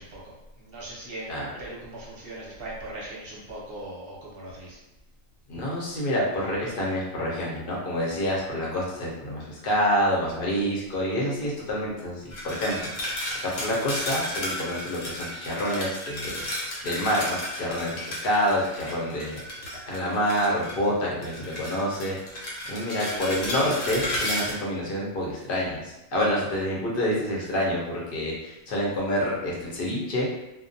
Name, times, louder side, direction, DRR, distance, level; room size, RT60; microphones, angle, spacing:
voice 1, 0.0-4.8, right 1 dB, 55° right, -5 dB, 0.8 m, -40 dB
voice 2, 5.5-12.8 13.1-16.4 16.8-19.4 19.9-30.2, equal, 50° left, -4 dB, 0.7 m, -27 dB
sound 1, 12.3-20.9 21.2-24.5, equal, 70° left, 1.0 m, -33 dB
2.3 x 2.1 x 2.6 m, 0.98 s
omnidirectional pair, 1.4 m